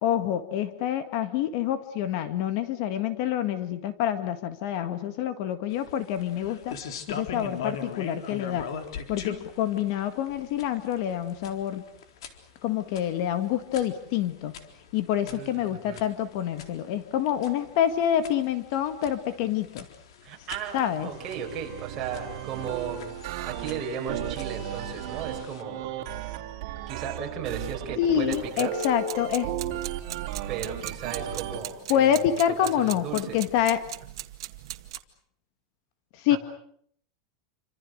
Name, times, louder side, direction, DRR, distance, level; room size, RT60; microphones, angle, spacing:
voice 1, 0.0-6.8 7.1-8.7 9.1-11.8 12.6-14.5 14.9-19.9 20.7-21.1 28.0-29.5 31.9-33.8 36.2-36.4, left 10 dB, 45° left, 10 dB, 1.7 m, -27 dB
sound 1, 5.7-25.6, left 6 dB, 80° left, 3.9 m, -42 dB
voice 2, 15.3-16.0 20.2-23.1 23.5-25.8 26.9-28.7 30.5-33.4 36.3-36.4, right 7 dB, 25° right, 0 dB, 6.8 m, -36 dB
sound 2, 20.8-31.6, right 9 dB, 50° right, 4.2 m, -35 dB
sound 3, 28.3-35.0, right 14 dB, 70° right, 2.0 m, -40 dB
28.5 x 26.5 x 6.5 m, 0.64 s
supercardioid pair, 175°, 3 cm